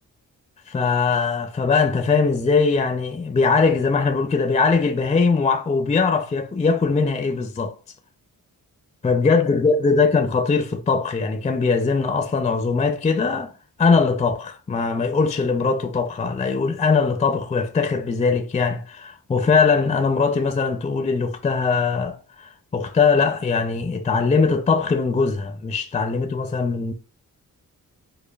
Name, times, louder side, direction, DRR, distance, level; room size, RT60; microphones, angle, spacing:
voice 1, 0.7-7.7 9.0-13.5 13.8-26.9, left 4 dB, 20° left, 0.4 m, -21 dB
5.1 x 2.1 x 2.3 m
wide cardioid pair, 110°, 35 cm